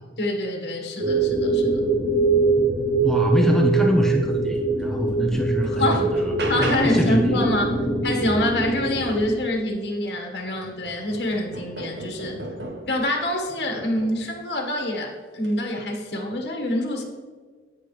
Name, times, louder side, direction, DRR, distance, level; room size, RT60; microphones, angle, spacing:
voice 1, 0.2-1.9 5.7-6.1 6.5-7.8 8.0-12.4 12.9-17.0, left 1 dB, 65° left, 1 dB, 1.6 m, -26 dB
sound 1, 1.0-9.3, right 3 dB, 30° right, 1.4 m, -23 dB
voice 2, 3.0-6.1 6.6-7.4, equal, 5° left, 1 dB, 0.7 m, -23 dB
sound 2, 4.8-4.9 5.4-7.2 9.6-9.7 10.1-13.1 13.8-14.3 15.3-15.6, right 2 dB, 70° right, 1.2 m, -36 dB
16.5 x 6.0 x 3.3 m, 1.6 s
head